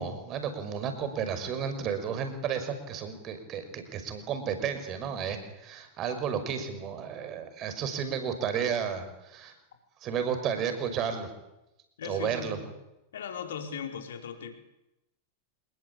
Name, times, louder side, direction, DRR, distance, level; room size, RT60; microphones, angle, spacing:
voice 1, 0.0-9.5 10.0-11.3 12.0-12.6, right 7 dB, 35° right, 8 dB, 6.1 m, -32 dB
voice 2, 12.0-12.7 13.1-14.5, left 7 dB, 60° left, 5 dB, 4.7 m, -38 dB
27.0 x 21.0 x 8.7 m, 0.93 s
figure-of-eight pair, 90°, 0 cm